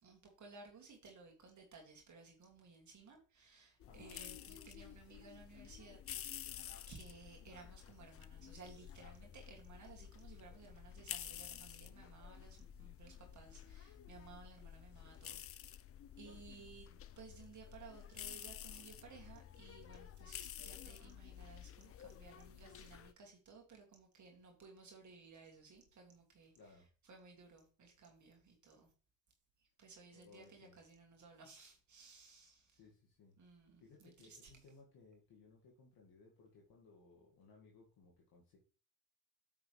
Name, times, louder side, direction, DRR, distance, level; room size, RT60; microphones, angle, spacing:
voice 1, 0.0-6.0 6.9-15.7 16.2-26.7 27.0-28.9 29.6-32.8 33.4-34.6, right 4 dB, 40° right, 2.4 m, -58 dB
voice 2, 3.8-4.2 16.2-16.4 26.6-26.9 30.1-30.8 32.7-33.3 33.8-38.6, left 4 dB, 55° left, 2.0 m, -62 dB
sound 1, 3.8-23.1, left 10 dB, 35° left, 0.5 m, -51 dB
sound 2, 8.8-14.8, left 3 dB, ahead, 1.5 m, -62 dB
9.0 x 6.1 x 3.3 m
hypercardioid pair, 60°, 43 cm